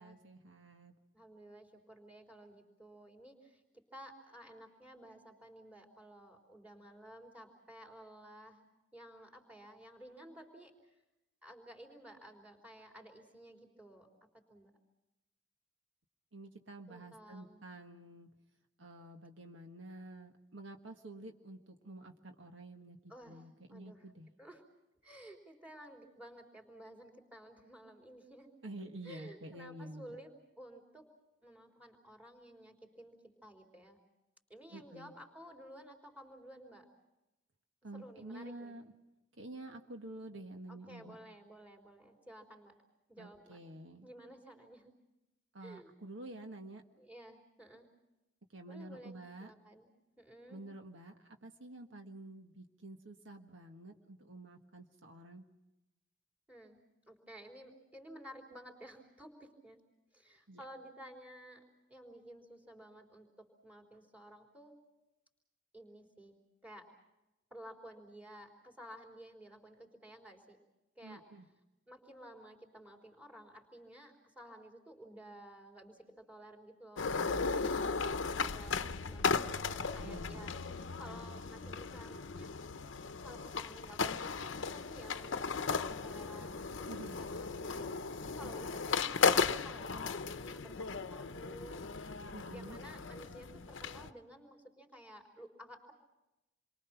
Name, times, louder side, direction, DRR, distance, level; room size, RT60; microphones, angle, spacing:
voice 1, 0.0-0.9 16.3-18.3 18.8-24.3 28.6-30.1 34.7-35.1 37.8-38.8 39.4-41.2 43.2-44.1 45.5-46.8 48.5-49.5 50.5-55.4 60.5-60.6 71.0-71.5 80.0-80.5 86.9-87.2 88.4-88.5 92.3-92.8, right 1 dB, 75° right, 4 dB, 1.6 m, -49 dB
voice 2, 1.1-3.6 3.9-8.6 8.9-10.9 11.4-14.1 14.5-14.7 16.9-17.6 23.1-24.1 24.4-24.6 25.0-28.5 29.0-31.0 31.4-34.0 34.5-36.9 37.9-38.8 40.7-42.7 43.1-43.6 44.0-44.9 45.6-45.9 46.9-47.9 48.7-49.9 50.2-50.6 56.5-56.8 57.1-59.8 60.1-61.6 61.9-64.7 65.7-66.4 66.6-66.9 67.5-70.6 71.0-71.2 71.9-79.4 79.7-82.5 83.2-86.6 86.9-92.2 92.5-95.9, right 1 dB, 10° right, 1 dB, 3.9 m, -54 dB
sound 1, 77.0-94.1, left 5 dB, 75° left, 0.8 m, -36 dB
28.5 x 23.5 x 5.9 m, 0.96 s
head